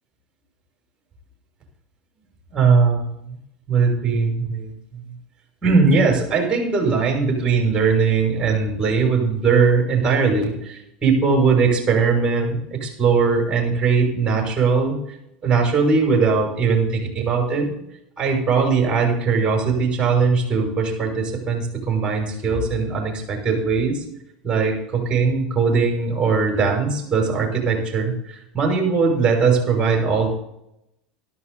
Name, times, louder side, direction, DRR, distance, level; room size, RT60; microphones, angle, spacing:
voice 1, 2.5-3.4 3.7-5.0 5.6-15.0 15.4-17.7 18.2-24.0 24.4-30.3, right 5 dB, 25° right, 0 dB, 6.3 m, -20 dB
12.5 x 12.5 x 4.1 m, 0.78 s
hypercardioid pair, 80°, 4 cm